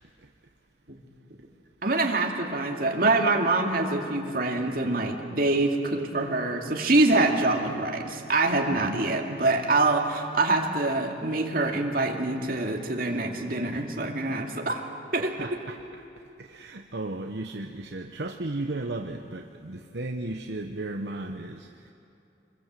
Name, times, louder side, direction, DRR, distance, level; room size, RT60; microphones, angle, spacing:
voice 1, 1.8-14.8 15.1-15.6, right 2 dB, 55° right, 1 dB, 2.4 m, -25 dB
voice 2, 8.7-9.0 15.2-15.8 16.4-21.9, right 2 dB, 75° right, 3 dB, 1.0 m, -35 dB
25.5 x 21.5 x 7.6 m, 2.8 s
head